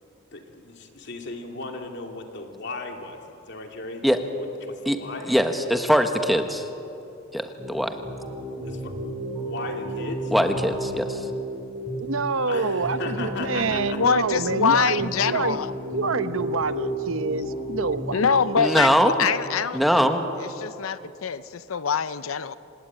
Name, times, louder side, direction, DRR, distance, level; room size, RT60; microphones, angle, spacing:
voice 1, 0.3-5.3 8.7-8.9 9.4-10.3 12.5-14.0, left 3 dB, 60° left, 3 dB, 2.5 m, -36 dB
voice 2, 5.3-6.7 7.3-8.0 10.3-11.2 18.6-19.3 19.7-20.2, equal, ahead, 6 dB, 1.3 m, -21 dB
sound 1, 7.6-18.6, right 1 dB, 20° right, 5.9 m, -32 dB
voice 3, 12.0-15.6 15.9-18.6 19.3-19.4, right 4 dB, 75° right, 12 dB, 0.9 m, -27 dB
voice 4, 14.0-15.7 18.1-20.0 20.4-22.6, left 6 dB, 85° left, 14 dB, 0.6 m, -24 dB
27.5 x 17.5 x 9.0 m, 3.0 s
head